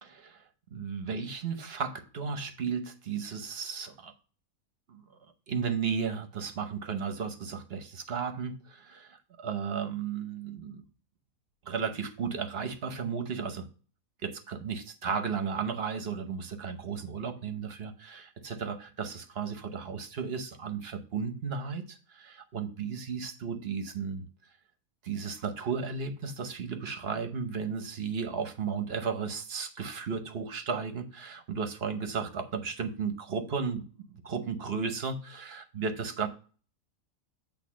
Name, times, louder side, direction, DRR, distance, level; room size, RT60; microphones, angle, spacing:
voice 1, 0.0-4.1 4.9-5.0 5.5-10.8 11.6-13.7 14.2-24.3 25.0-33.8 34.1-36.3, right 6 dB, 50° right, 1.0 m, -34 dB
8.4 x 3.4 x 6.1 m
omnidirectional pair, 1.5 m